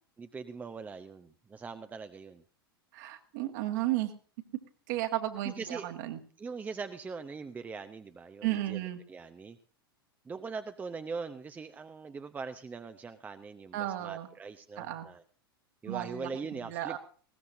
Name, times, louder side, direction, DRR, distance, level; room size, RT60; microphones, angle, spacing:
voice 1, 0.2-2.4 5.4-5.9 6.4-9.6 10.2-15.2 15.8-17.0, right 5 dB, 15° right, 9 dB, 0.7 m, -41 dB
voice 2, 2.9-4.1 4.9-6.2 8.4-9.0 13.7-14.3 14.8-15.1 15.9-17.0, right 14 dB, 50° right, 6 dB, 1.7 m, -34 dB
20.0 x 17.0 x 2.6 m, 0.42 s
figure-of-eight pair, 90°, 13 cm